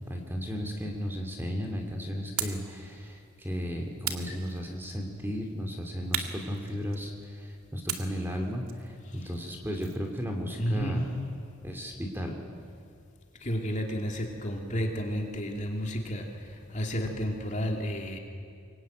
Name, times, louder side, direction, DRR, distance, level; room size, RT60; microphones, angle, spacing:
voice 1, 0.1-11.1 11.6-12.4, equal, 10° right, 2 dB, 2.6 m, -35 dB
sound 1, 2.4-2.7 4.0-5.0 6.1-7.2 7.9-10.1, right 8 dB, 80° right, 2.1 m, -37 dB
voice 2, 9.0-9.4 10.6-11.2 13.4-18.2, equal, 35° left, 1 dB, 2.8 m, -32 dB
25.0 x 23.0 x 9.2 m, 2.3 s
head